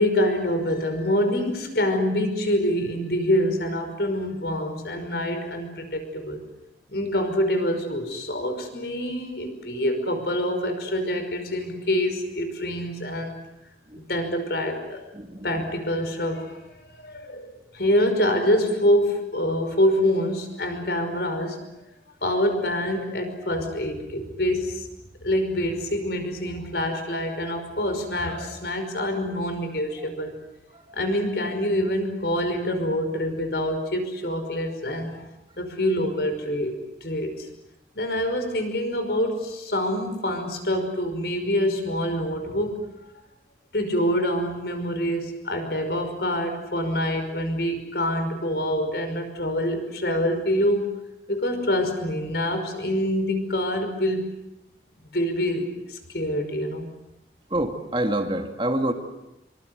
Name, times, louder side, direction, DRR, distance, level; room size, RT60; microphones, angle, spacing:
voice 1, 0.0-6.4 6.9-13.4 13.9-15.0 15.4-16.6 16.8-21.6 22.2-24.9 25.2-30.3 30.9-35.2 35.6-36.8 37.0-37.5 38.0-42.8 43.7-51.0 51.3-54.3 55.1-56.9, left 1 dB, 65° left, 7 dB, 5.5 m, -26 dB
voice 2, 57.5-58.9, right 1 dB, 30° right, 5 dB, 2.2 m, -25 dB
26.0 x 24.5 x 7.9 m, 0.90 s
head